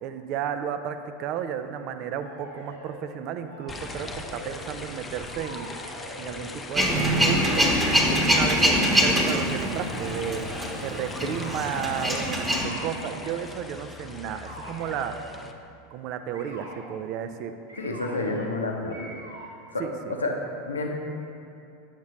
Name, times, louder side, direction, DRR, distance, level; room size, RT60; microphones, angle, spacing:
voice 1, 0.0-5.7 6.2-7.7 8.1-15.2 15.9-17.5 19.8-20.2, right 8 dB, 45° right, 9 dB, 0.4 m, -33 dB
sound 1, 2.2-3.0 3.4-4.9 5.2-6.5 7.2-7.7 8.6-9.2 9.9-10.7 11.2-11.9 12.5-13.4 14.2-15.4 16.3-16.8 17.7-18.6 18.9-19.6, right 1 dB, 80° right, 1.3 m, -44 dB
sound 2, 3.7-15.5, left 3 dB, 15° left, 0.5 m, -40 dB
Male speech man speaking / Vehicle / Engine starting, 6.7-12.6, equal, 10° right, 1.1 m, -24 dB
voice 2, 17.8-19.2 19.7-20.9, left 2 dB, 80° left, 1 dB, 0.7 m, -30 dB
8.2 x 5.9 x 3.1 m, 2.7 s
figure-of-eight pair, 85°, 0 cm